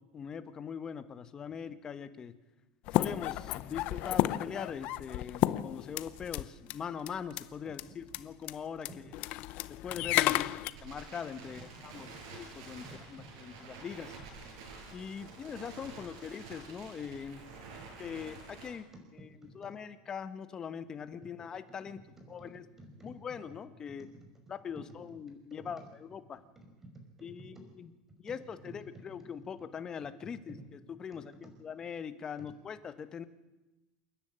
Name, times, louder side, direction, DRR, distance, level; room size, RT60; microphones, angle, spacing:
voice 1, 0.0-2.3 2.9-8.9 9.7-10.4 10.8-12.1 12.3-12.8 13.1-14.1 14.9-17.4 18.0-18.9 19.2-19.3 19.5-22.0 22.3-22.6 23.0-24.1 24.5-26.4 27.2-27.9 28.2-30.5 31.0-33.2, left 7 dB, 25° left, 11 dB, 1.2 m, -42 dB
sound 1, 2.9-6.4 6.7-6.8 7.1-7.4 7.8-7.9 8.1-8.2 8.5-8.6 8.8-10.7, left 16 dB, 55° left, 0.7 m, -32 dB
voice 2, 8.9-9.2 10.3-10.4 11.7-12.4 12.8-13.4 17.8-18.0 19.2-19.7 22.2-22.3 22.5-23.6 24.0-24.2 25.3-25.9 26.3-27.6 28.1-28.2 28.9-29.7 30.3-30.7 31.1-31.5, right 1 dB, 15° right, 4 dB, 5.3 m, -53 dB
Crackle, 9.4-18.7, right 4 dB, 80° right, 7.2 m, -49 dB
28.0 x 10.5 x 8.9 m, 1.1 s
supercardioid pair, 145°, 3 cm